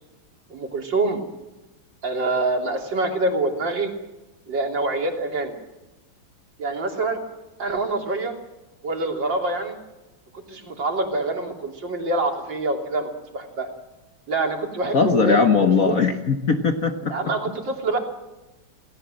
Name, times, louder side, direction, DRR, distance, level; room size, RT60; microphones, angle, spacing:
voice 1, 0.5-1.2 2.0-3.9 4.5-5.5 6.6-7.2 7.6-8.4 8.8-9.8 10.3-13.7 14.3-16.0 17.1-18.0, right 2 dB, 55° right, 2 dB, 3.8 m, -25 dB
voice 2, 14.9-17.1, left 5 dB, 45° left, 6 dB, 1.5 m, -19 dB
27.5 x 18.0 x 7.6 m, 1.0 s
omnidirectional pair, 2.3 m